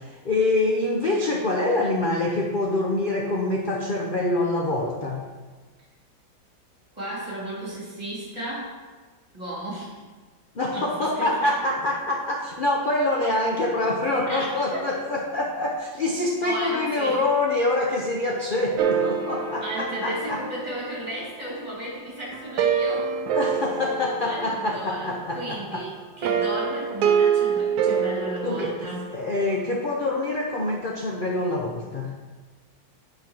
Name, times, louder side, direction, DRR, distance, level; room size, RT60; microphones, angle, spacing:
voice 1, 0.1-5.2 10.5-20.4 23.3-25.9 28.4-28.7 29.1-32.1, left 2 dB, 80° left, -1 dB, 0.4 m, -25 dB
voice 2, 6.9-8.8 9.3-10.0 10.7-10.9 11.2-11.5 14.2-14.9 16.4-17.3 19.6-23.1 24.2-25.9 26.2-29.1, equal, 20° right, -5 dB, 2.6 m, -34 dB
sound 1, 18.8-21.8 22.3-25.1 26.2-29.5, right 7 dB, 70° right, 1.0 m, -26 dB
8.5 x 5.6 x 4.4 m, 1.3 s
omnidirectional pair, 2.0 m